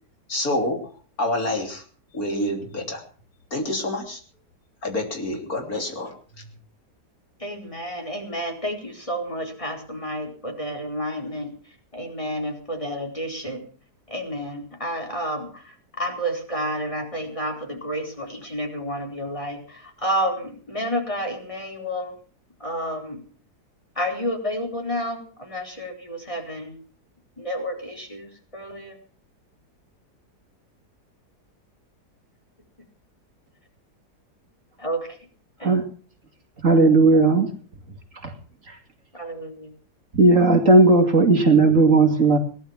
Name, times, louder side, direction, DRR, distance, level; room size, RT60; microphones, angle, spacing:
voice 1, 0.3-0.8 1.2-1.8 2.1-3.0 3.5-4.2 4.8-6.1, left 1 dB, 60° left, 3 dB, 3.7 m, -27 dB
voice 2, 7.4-11.5 11.9-13.6 14.1-15.5 16.0-19.6 20.0-22.1 22.6-23.2 24.0-26.8 27.4-28.3 28.5-28.9 34.8-35.0 35.6-35.7 39.1-39.7, equal, 20° left, 1 dB, 4.4 m, -30 dB
voice 3, 36.6-37.5 38.2-38.3 40.1-42.4, right 3 dB, 50° right, 3 dB, 2.7 m, -16 dB
18.5 x 11.5 x 5.9 m, 0.42 s
omnidirectional pair, 1.7 m